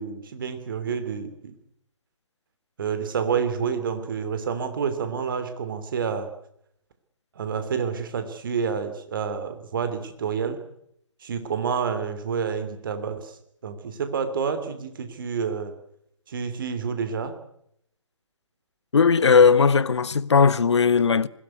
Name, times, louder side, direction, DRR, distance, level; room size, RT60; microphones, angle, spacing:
voice 1, 0.0-1.5 2.8-6.3 7.3-10.6 11.2-15.7 16.3-17.4, right 6 dB, 45° right, 3.0 m, -29 dB
voice 2, 18.9-21.3, left 5 dB, 60° left, 1.0 m, -18 dB
21.0 x 17.0 x 9.6 m
figure-of-eight pair, 140°, 16 cm